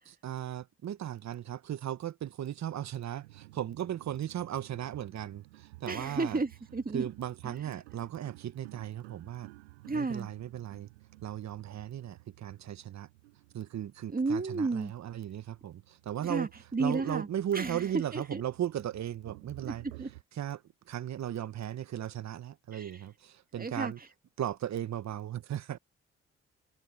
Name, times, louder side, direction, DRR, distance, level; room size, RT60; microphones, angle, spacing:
voice 1, 0.1-6.4 6.9-9.5 9.9-10.9 11.2-13.1 13.5-16.5 16.8-19.8 20.3-24.0 24.4-25.8, right 11 dB, 60° right, 1.5 m, -37 dB
sound 1, 3.2-20.2, right 22 dB, 90° right, 7.1 m, -54 dB
voice 2, 5.9-7.1 7.4-7.5 9.9-10.3 14.1-14.9 16.2-17.3 17.5-17.8 18.1-18.4 19.7-19.8 20.0-20.1 22.7-22.9 23.6-23.9, right 3 dB, 30° right, 2.2 m, -32 dB
hypercardioid pair, 45°, 31 cm